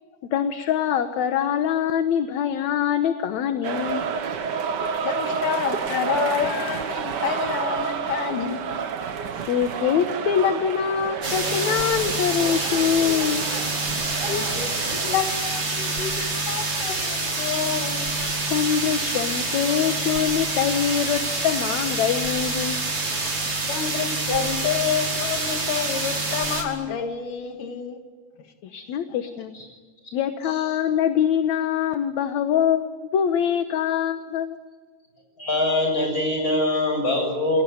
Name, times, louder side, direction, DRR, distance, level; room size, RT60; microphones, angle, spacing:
voice 1, 0.3-4.0 9.5-13.5 18.2-22.8 28.6-29.5 30.1-34.6, left 8 dB, 65° left, 8 dB, 2.4 m, -24 dB
sound 1, 3.6-15.2, right 6 dB, 65° right, 1.0 m, -30 dB
voice 2, 5.0-8.6 9.3-9.5 14.2-18.1 23.7-28.0 29.1-29.2, left 7 dB, 85° left, 5 dB, 3.3 m, -28 dB
sound 2, 11.2-26.6, right 2 dB, 40° right, 6.0 m, -27 dB
voice 3, 35.4-37.6, left 1 dB, 25° left, 3 dB, 8.3 m, -23 dB
29.5 x 21.0 x 9.4 m, 1.4 s
omnidirectional pair, 3.6 m